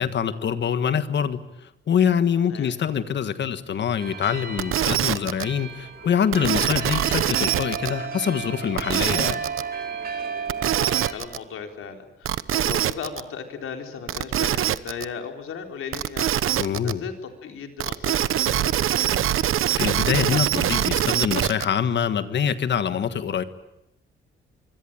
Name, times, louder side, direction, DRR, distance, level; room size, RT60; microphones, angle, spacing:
voice 1, 0.0-9.4 16.6-17.0 19.8-23.4, left 8 dB, 60° left, 11 dB, 1.6 m, -25 dB
sound 1, 4.0-11.1, right 5 dB, 45° right, 4.1 m, -34 dB
sound 2, 4.6-5.4 6.3-7.9 8.8-9.6 10.5-11.4 12.2-13.2 14.1-15.0 15.9-16.9 17.8-21.6, right 11 dB, 80° right, 1.0 m, -23 dB
voice 2, 10.6-19.3, left 6 dB, 90° left, 5 dB, 4.2 m, -37 dB
25.5 x 25.0 x 9.0 m, 0.87 s
wide cardioid pair, 170°, 21 cm